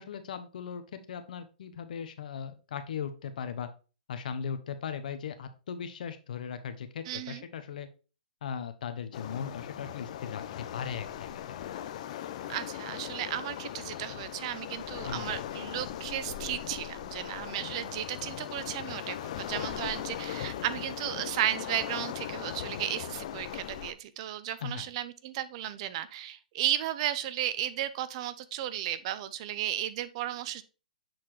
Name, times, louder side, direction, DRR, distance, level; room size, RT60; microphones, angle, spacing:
voice 1, 0.0-3.7 4.1-7.9 8.4-11.6 15.0-15.4 24.6-24.9, left 7 dB, 60° left, 9 dB, 0.9 m, -38 dB
voice 2, 7.1-7.4 12.5-30.6, right 12 dB, 40° right, 14 dB, 0.6 m, -34 dB
Waves surf, 9.1-23.9, left 11 dB, 45° left, 0.6 m, -39 dB
7.8 x 4.3 x 3.2 m, 0.34 s
hypercardioid pair, 145°, 5 cm